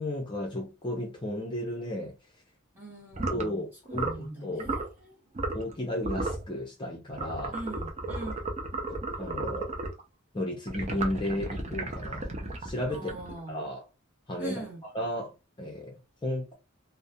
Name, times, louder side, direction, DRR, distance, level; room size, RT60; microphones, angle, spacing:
voice 1, 0.0-2.2 3.3-4.7 5.5-7.6 8.9-9.7 10.3-12.3 12.6-13.1 13.5-13.8 14.3-16.6, left 1 dB, 25° left, 0.6 m, -34 dB
voice 2, 2.7-5.2 7.5-8.5 12.9-13.7 14.4-14.8, right 2 dB, 10° right, 1.0 m, -41 dB
sound 1, 3.1-3.5 3.9-4.2 4.6-4.9 5.3-5.7 6.0-6.4 7.1-10.0 10.7-13.5, right 2 dB, 35° right, 0.6 m, -34 dB
2.4 x 2.0 x 2.7 m
head